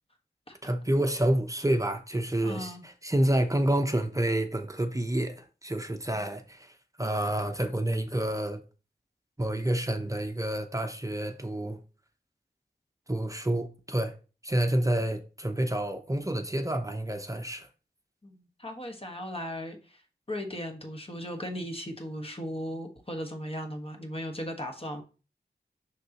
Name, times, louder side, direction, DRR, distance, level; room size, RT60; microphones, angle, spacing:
voice 1, 0.6-6.7 7.0-8.6 9.4-11.8 13.1-14.1 14.4-17.7, right 1 dB, 20° right, 0.8 m, -28 dB
voice 2, 2.4-2.8 18.2-20.0 20.3-25.0, equal, 30° left, 1.4 m, -37 dB
6.6 x 6.5 x 3.0 m
wide cardioid pair, 75°, 18 cm